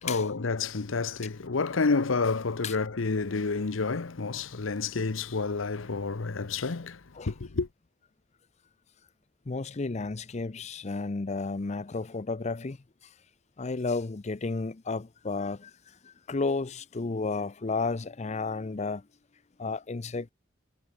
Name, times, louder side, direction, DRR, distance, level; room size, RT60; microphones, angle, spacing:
voice 1, 0.0-7.0 7.3-7.7, left 4 dB, 85° left, 0.8 m, -29 dB
voice 2, 9.5-12.8 13.0-13.1 13.6-19.0 19.6-20.3, left 3 dB, 35° left, 0.6 m, -32 dB
head